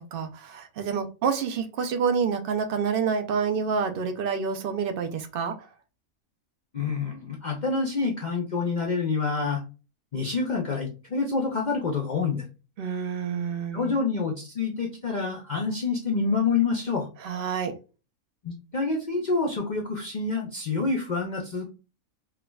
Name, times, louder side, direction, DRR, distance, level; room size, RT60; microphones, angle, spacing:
voice 1, 0.0-5.7 12.8-13.9 17.2-17.7, right 6 dB, 80° right, 6 dB, 0.5 m, -28 dB
voice 2, 6.7-9.6 10.1-12.4 13.7-17.1 18.4-21.6, left 4 dB, 60° left, 0 dB, 0.5 m, -27 dB
4.5 x 2.2 x 2.2 m, 0.32 s
omnidirectional pair, 1.5 m